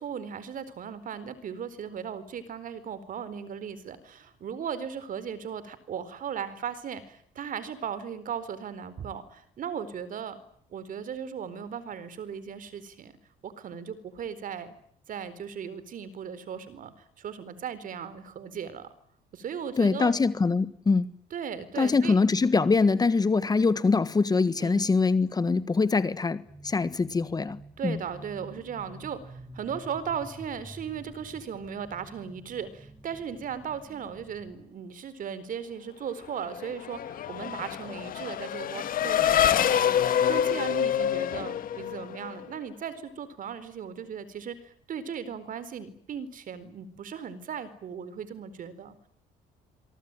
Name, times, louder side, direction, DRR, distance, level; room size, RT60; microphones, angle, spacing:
voice 1, 0.0-10.4 10.7-13.1 13.4-14.7 15.1-18.9 19.3-20.1 21.3-22.1 24.6-24.9 27.8-49.0, right 7 dB, 55° right, 4.3 m, -37 dB
voice 2, 19.8-21.1 21.8-28.0, left 4 dB, 25° left, 1.5 m, -24 dB
sound 1, 26.4-34.6, right 1 dB, 5° right, 6.2 m, -49 dB
Race car auto racing / Accelerating revving vroom, 36.4-42.4, left 9 dB, 55° left, 2.0 m, -26 dB
26.5 x 24.0 x 9.1 m
cardioid pair, 110°, 17 cm